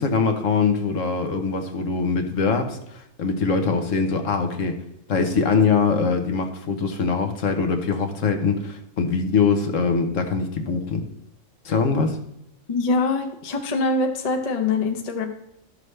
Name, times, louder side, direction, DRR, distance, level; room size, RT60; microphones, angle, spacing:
voice 1, 0.0-4.8 5.1-11.0 11.6-12.2, left 5 dB, 70° left, 6 dB, 1.3 m, -22 dB
voice 2, 12.7-15.3, left 3 dB, 35° left, 4 dB, 0.8 m, -23 dB
12.5 x 6.6 x 3.2 m, 0.79 s
omnidirectional pair, 1.4 m